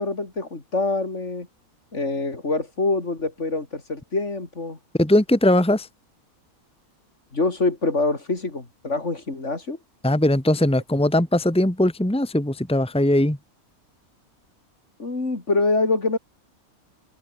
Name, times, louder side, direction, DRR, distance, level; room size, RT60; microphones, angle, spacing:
voice 1, 0.0-1.5 1.9-4.8 7.3-9.8 15.0-16.2, left 3 dB, 55° left, 3.6 m, -25 dB
voice 2, 5.0-5.9 10.0-13.4, left 1 dB, 5° left, 1.9 m, -20 dB
open air
omnidirectional pair, 1.5 m